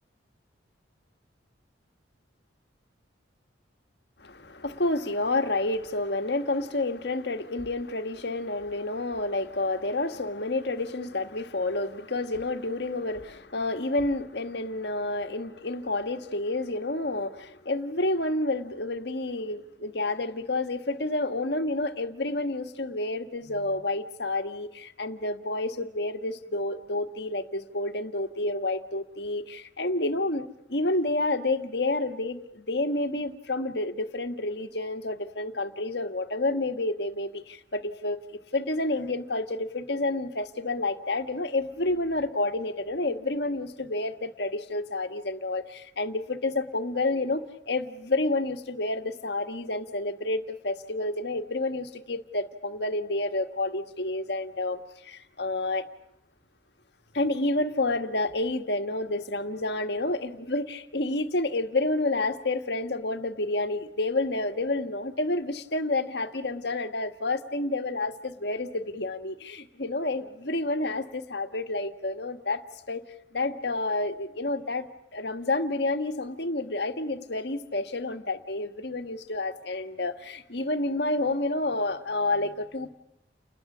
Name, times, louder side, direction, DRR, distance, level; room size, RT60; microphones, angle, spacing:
voice 1, 4.2-30.4 30.7-38.2 38.5-55.9 57.1-72.6 72.9-73.0 73.3-74.9 75.1-82.9, left 2 dB, 55° left, 1.6 m, -29 dB
30.0 x 20.5 x 7.4 m
head